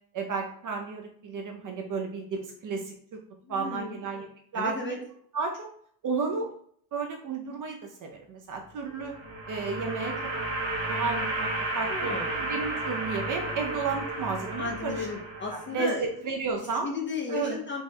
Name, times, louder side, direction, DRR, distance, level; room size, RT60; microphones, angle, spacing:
voice 1, 0.1-3.2 3.5-4.3 4.5-4.7 5.3-5.7 6.0-6.5 6.9-9.1 9.5-10.1 10.9-11.5 11.7-15.0 15.7-16.9 17.3-17.6, right 4 dB, 45° right, 3 dB, 0.5 m, -32 dB
voice 2, 3.4-4.0 4.5-5.0 11.9-12.3 14.6-16.1 16.8-17.8, left 4 dB, 30° left, 0 dB, 0.3 m, -34 dB
sound 1, 8.8-16.0, right 2 dB, 80° right, 1.0 m, -33 dB
3.5 x 3.0 x 2.6 m, 0.62 s
cardioid pair, 175°, 46 cm